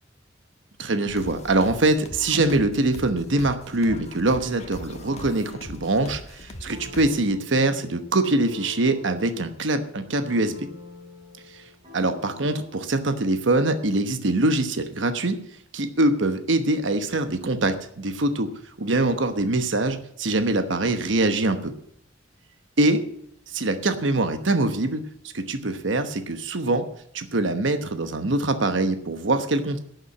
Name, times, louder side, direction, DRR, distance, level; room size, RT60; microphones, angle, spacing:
voice 1, 0.8-10.7 11.5-11.6 11.9-15.3 15.7-18.5 18.8-21.7 22.8-23.0 23.5-25.0 25.3-26.8 27.1-29.8, right 2 dB, 70° right, 8 dB, 1.1 m, -23 dB
sound 1, 1.1-7.3, left 1 dB, 35° left, 1.3 m, -41 dB
sound 2, 5.4-6.1 6.7-12.9, left 4 dB, 30° right, 3.7 m, -45 dB
11.5 x 7.2 x 8.4 m, 0.68 s
head